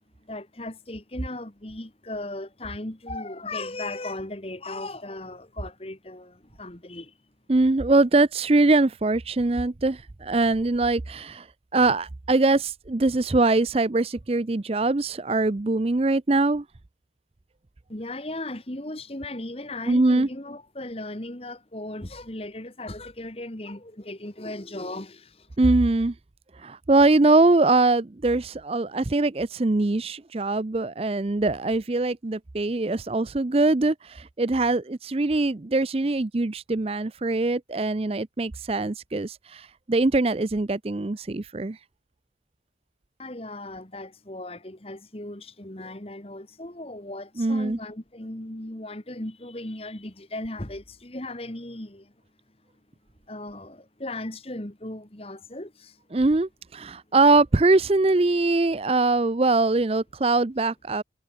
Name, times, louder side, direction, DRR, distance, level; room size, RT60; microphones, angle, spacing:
voice 1, 0.2-7.1 17.9-25.6 43.2-52.1 53.3-56.0, left 2 dB, 30° left, 1.9 m, -37 dB
voice 2, 7.5-11.5 11.7-16.6 19.9-20.3 25.6-26.1 26.6-41.8 47.4-47.8 56.1-61.0, right 2 dB, 30° right, 0.5 m, -22 dB
head